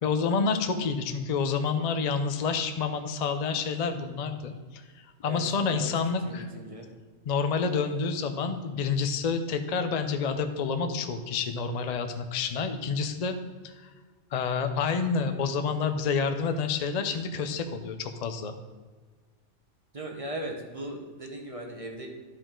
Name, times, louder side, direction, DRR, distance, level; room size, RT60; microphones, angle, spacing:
voice 1, 0.0-6.5 7.3-13.4 13.6-13.9 14.3-18.5, left 5 dB, 45° left, 7 dB, 0.6 m, -29 dB
voice 2, 5.2-5.9 6.2-6.9 19.9-22.1, right 1 dB, 30° right, 1 dB, 1.1 m, -38 dB
11.5 x 5.0 x 3.7 m, 1.4 s
omnidirectional pair, 1.2 m